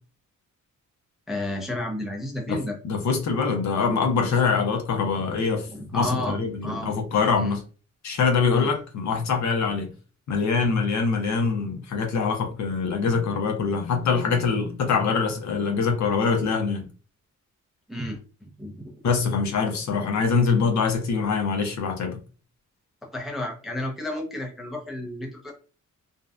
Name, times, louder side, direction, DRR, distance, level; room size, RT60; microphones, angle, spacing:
voice 1, 1.3-2.8 5.2-6.9 7.4-7.6 8.5-8.7 17.9-18.2 18.6-19.0 23.1-25.5, left 1 dB, ahead, 0.4 m, -32 dB
voice 2, 2.5-5.7 5.9-7.6 8.0-9.9 10.3-16.9 19.0-22.2, left 5 dB, 65° left, 0.6 m, -24 dB
2.6 x 2.1 x 2.3 m
wide cardioid pair, 170°, 31 cm